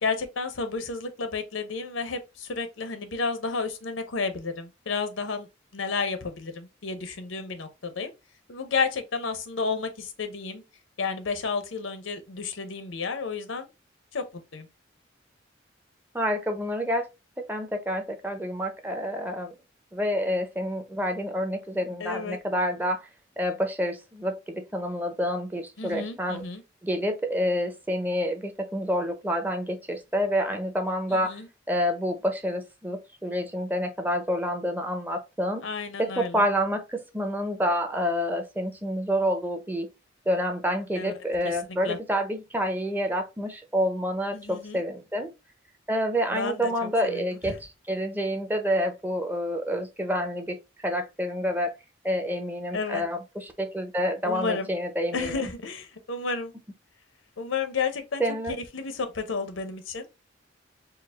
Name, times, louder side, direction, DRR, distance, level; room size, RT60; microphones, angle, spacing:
voice 1, 0.0-5.5 5.7-8.1 8.5-10.6 11.0-13.7 14.1-14.7 22.0-22.4 25.8-26.6 31.1-31.5 35.6-36.4 40.9-41.1 41.4-41.6 41.8-42.0 44.3-44.8 46.3-47.6 52.7-53.0 54.2-54.7 55.1-56.5 57.4-58.2 58.5-60.1, left 4 dB, 85° left, 0.8 m, -31 dB
voice 2, 16.1-17.1 17.5-19.5 19.9-23.0 23.4-26.4 26.8-31.4 31.7-35.6 36.0-39.9 40.3-45.3 45.9-50.6 50.8-51.7 52.0-55.4 58.2-58.6, equal, 10° right, 0.6 m, -28 dB
4.6 x 2.1 x 3.5 m
head